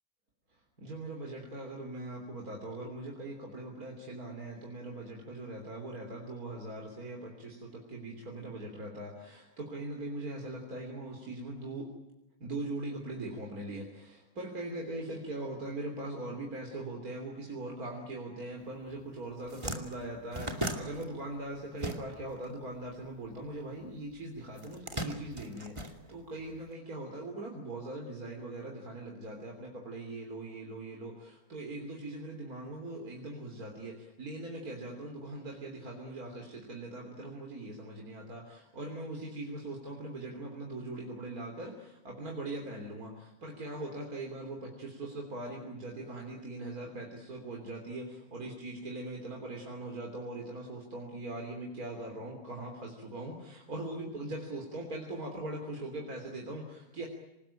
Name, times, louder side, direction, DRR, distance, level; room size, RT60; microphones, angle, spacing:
voice 1, 0.5-11.9 12.4-57.1, right 2 dB, 80° right, 2 dB, 3.8 m, -41 dB
sound 1, 18.9-19.0 19.3-22.4 22.7-23.9 24.5-26.6, right 1 dB, 20° right, 2.5 m, -38 dB
27.5 x 19.5 x 9.0 m, 0.98 s
omnidirectional pair, 1.5 m